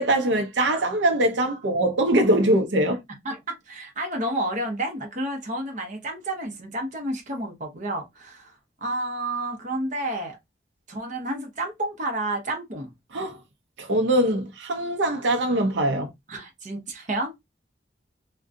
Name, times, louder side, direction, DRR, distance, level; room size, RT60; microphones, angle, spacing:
voice 1, 0.0-3.0 13.1-13.4 13.8-16.1, right 1 dB, 85° right, 0.7 m, -22 dB
voice 2, 3.2-8.5 8.8-10.4 10.9-12.9 16.3-17.3, right 1 dB, 45° right, 0.9 m, -30 dB
3.6 x 2.3 x 2.6 m
head